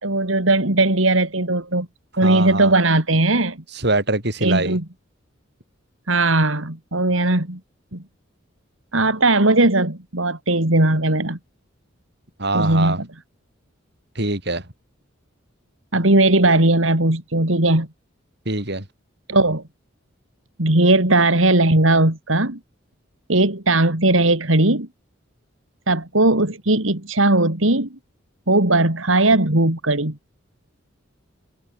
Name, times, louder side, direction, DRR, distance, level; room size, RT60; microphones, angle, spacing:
voice 1, 0.0-1.9 2.2-3.6 4.4-4.8 6.1-7.6 7.9-8.0 8.9-11.4 12.5-13.0 15.9-17.9 19.3-19.6 20.6-22.6 23.3-24.9 25.9-27.9 28.5-30.2, right 2 dB, 80° right, 3.7 m, -18 dB
voice 2, 2.2-2.7 3.7-4.8 12.4-13.0 14.1-14.6 18.4-18.8, right 2 dB, 55° right, 6.7 m, -23 dB
head